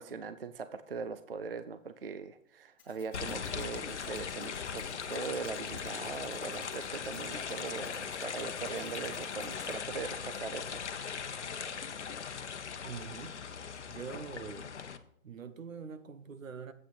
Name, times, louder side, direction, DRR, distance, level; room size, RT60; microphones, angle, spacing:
voice 1, 0.0-10.9, right 5 dB, 45° right, 0.5 m, -41 dB
sound 1, 2.8-9.7, left 7 dB, 10° left, 1.9 m, -58 dB
sound 2, 3.1-15.0, left 6 dB, 60° left, 0.9 m, -39 dB
voice 2, 12.8-13.4 13.9-14.8 15.2-16.7, right 6 dB, 75° right, 1.2 m, -44 dB
8.3 x 6.4 x 5.6 m
hypercardioid pair, 170°, 39 cm